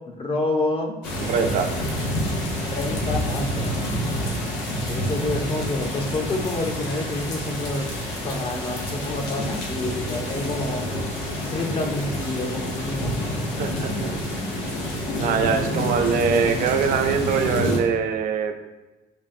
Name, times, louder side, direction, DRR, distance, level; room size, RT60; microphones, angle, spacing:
voice 1, 0.2-1.0 2.6-3.7 4.9-7.9 8.2-10.8 11.5-13.2 15.4-15.8, left 2 dB, 35° left, 3 dB, 0.5 m, -28 dB
sound 1, 1.0-17.8, equal, 85° left, 0.9 m, -28 dB
voice 2, 1.2-1.7 13.6-14.1 15.2-18.5, right 6 dB, 55° right, 6 dB, 0.4 m, -23 dB
5.0 x 2.5 x 2.5 m, 1.1 s
cardioid pair, 110°, 17 cm